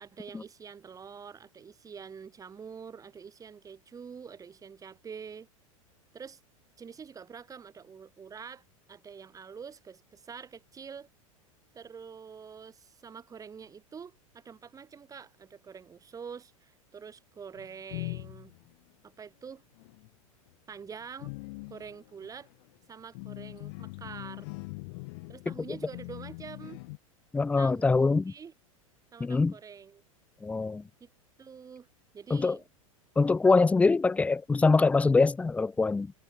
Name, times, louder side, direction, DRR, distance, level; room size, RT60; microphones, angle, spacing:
voice 1, 0.0-5.5 6.1-6.4 6.8-8.6 8.9-11.1 11.7-18.5 19.0-19.6 20.7-21.3 21.7-22.5 22.9-24.5 25.3-26.8 27.6-28.5 29.1-30.0 31.0-31.1 31.4-31.9 32.1-32.6, right 6 dB, 20° right, 3.8 m, -46 dB
sound 1, 17.6-18.7 19.8-20.1 20.5-27.0, left 27 dB, 50° left, 1.8 m, -42 dB
voice 2, 27.3-28.3 29.2-29.5 30.4-30.8 32.3-32.6 33.2-36.1, left 3 dB, 5° left, 0.5 m, -24 dB
figure-of-eight pair, 90°, 18 cm